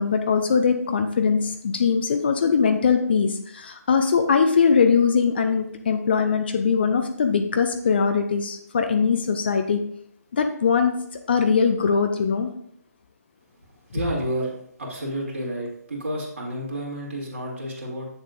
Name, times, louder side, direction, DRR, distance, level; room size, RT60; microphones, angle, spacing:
voice 1, 0.0-9.8 10.3-10.9 11.3-12.5, left 6 dB, 35° left, 6 dB, 0.6 m, -21 dB
voice 2, 13.9-14.5 14.8-18.1, right 1 dB, 45° right, -3 dB, 2.6 m, -30 dB
8.1 x 6.9 x 2.6 m, 0.69 s
figure-of-eight pair, 145°, 9 cm